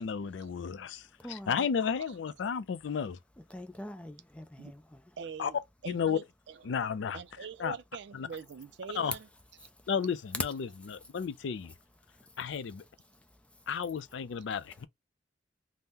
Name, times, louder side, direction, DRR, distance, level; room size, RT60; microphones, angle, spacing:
voice 1, 0.0-1.0 1.3-3.2 5.4-5.5 5.9-6.2 6.6-7.2 7.6-7.7 8.1-8.3 9.0-9.2 9.9-11.7 12.4-12.8 13.7-14.9, left 6 dB, 85° left, 0.4 m, -33 dB
voice 2, 1.0-1.7 3.5-5.2 9.6-9.9 10.8-11.2 11.6-11.8 12.0-12.5 12.8-13.8 14.5-14.8, left 1 dB, 5° left, 0.4 m, -49 dB
voice 3, 5.2-5.6 5.8-6.7 7.1-9.3, right 6 dB, 70° right, 0.4 m, -43 dB
2.8 x 2.1 x 3.5 m
head